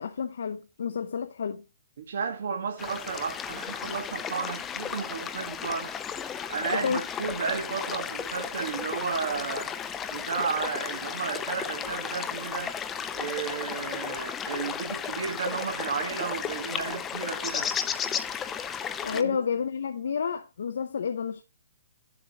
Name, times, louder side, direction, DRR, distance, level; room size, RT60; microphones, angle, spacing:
voice 1, 0.0-1.6 6.7-7.1 19.0-21.4, left 6 dB, 55° left, 0.7 m, -30 dB
voice 2, 2.0-5.9 6.5-9.7 10.1-12.7 13.1-17.7 19.1-19.4, right 6 dB, 50° right, 1.5 m, -33 dB
sound 1, 2.8-19.2, left 7 dB, 10° left, 0.3 m, -34 dB
10.5 x 7.4 x 2.9 m
hypercardioid pair, 175°, 0 cm